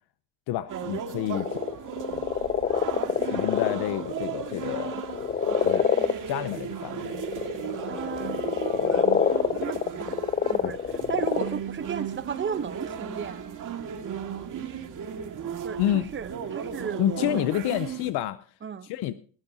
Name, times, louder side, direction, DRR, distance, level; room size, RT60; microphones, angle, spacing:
voice 1, 0.5-1.5 3.3-4.9 5.6-5.9 6.3-7.2 10.6-10.7 15.8-16.1 17.0-18.4 18.8-19.1, left 13 dB, 85° left, 0.7 m, -28 dB
sound 1, 0.7-18.1, right 8 dB, 50° right, 2.0 m, -36 dB
sound 2, 1.3-6.1 6.9-11.6, left 7 dB, 25° left, 0.5 m, -26 dB
voice 2, 7.8-9.1 9.5-10.2 10.5-10.8 11.1-13.4 15.6-17.3 18.6-18.9, right 7 dB, 30° right, 0.8 m, -35 dB
19.5 x 12.0 x 2.7 m
cardioid pair, 125°, 39 cm